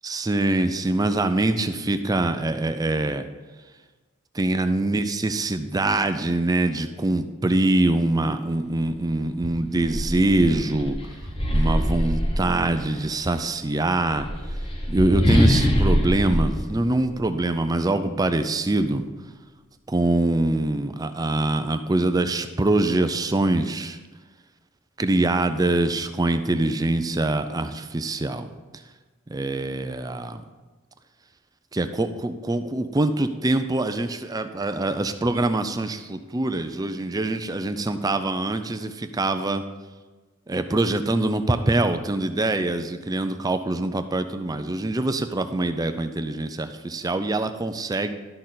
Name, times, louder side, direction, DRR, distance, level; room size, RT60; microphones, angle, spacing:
voice 1, 0.0-3.3 4.3-11.0 11.5-14.3 14.9-19.1 19.9-24.0 25.0-28.5 29.3-30.4 31.7-39.6 40.5-48.1, right 2 dB, 15° right, 9 dB, 0.4 m, -24 dB
sound 1, 8.9-9.0 9.4-13.0 14.0-17.6, equal, 25° left, 1.0 m, -24 dB
12.0 x 6.4 x 4.0 m, 1.3 s
head